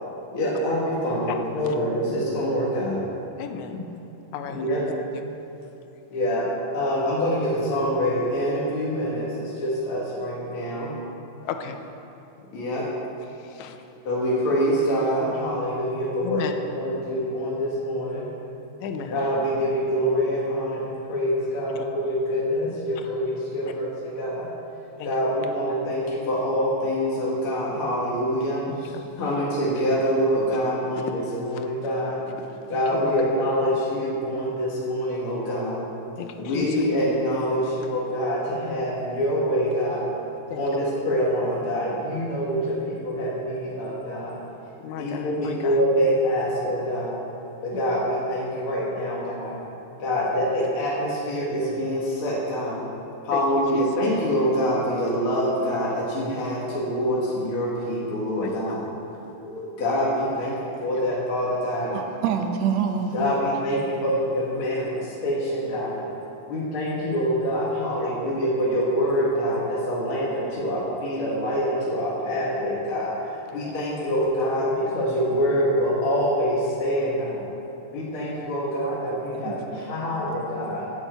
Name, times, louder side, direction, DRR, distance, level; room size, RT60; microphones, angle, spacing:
voice 1, 0.3-3.0 4.5-4.8 6.1-6.5 6.7-10.9 12.5-12.9 14.1-16.4 16.7-18.3 19.1-24.5 25.0-28.9 29.2-32.2 32.7-35.8 36.4-40.1 40.6-44.4 45.0-47.2 47.6-49.6 50.0-52.9 53.2-58.9 59.4-62.0 63.1-66.1 66.5-73.2 73.5-77.5 77.9-80.9, equal, 50° left, -6 dB, 2.3 m, -25 dB
voice 2, 3.4-3.8 4.3-5.2 11.4-11.8 13.4-13.8 16.2-16.5 18.8-19.3 21.8-21.9 23.7-23.8 25.0-25.1 28.7-29.4 30.9-31.0 31.5-31.7 32.4-33.4 36.2-36.8 40.5-40.7 44.8-45.8 47.7-47.8 53.3-53.9 58.4-59.0 60.4-60.6 61.0-61.1 63.4-63.5 68.0-68.1 73.5-73.6, left 7 dB, 85° left, 6 dB, 2.1 m, -35 dB
voice 3, 61.9-63.2 79.3-80.4, right 7 dB, 75° right, 4 dB, 1.9 m, -28 dB
9.0 x 7.6 x 8.0 m, 2.9 s
omnidirectional pair, 3.3 m